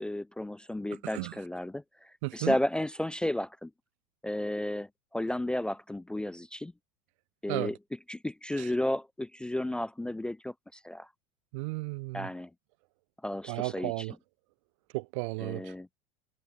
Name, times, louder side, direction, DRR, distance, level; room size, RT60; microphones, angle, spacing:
voice 1, 0.0-1.8 2.3-3.7 4.2-4.9 5.1-6.7 7.4-7.8 8.1-11.1 12.1-12.5 13.2-14.1 15.4-15.9, left 1 dB, 5° left, 0.3 m, -33 dB
voice 2, 2.2-2.6 7.5-7.7 8.6-8.7 11.5-12.3 13.5-14.1 14.9-15.7, right 26 dB, 70° right, 0.6 m, -34 dB
supercardioid pair, 115°, 17 cm